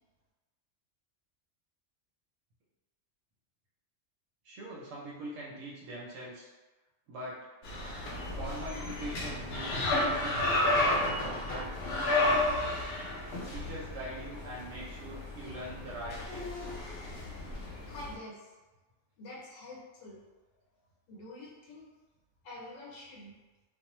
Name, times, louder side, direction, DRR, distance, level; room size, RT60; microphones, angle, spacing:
voice 1, 4.4-6.5 7.1-7.5 8.3-9.9 10.2-11.0 11.5-12.9 13.5-16.7, right 1 dB, 85° right, -5 dB, 0.9 m, -43 dB
sound 1, 7.6-18.1, left 2 dB, 65° left, 0.7 m, -32 dB
voice 2, 17.9-18.5 19.2-20.2 21.1-21.9 22.4-23.3, left 2 dB, 90° left, -5 dB, 1.0 m, -46 dB
2.4 x 2.0 x 2.9 m, 1.2 s
omnidirectional pair, 1.3 m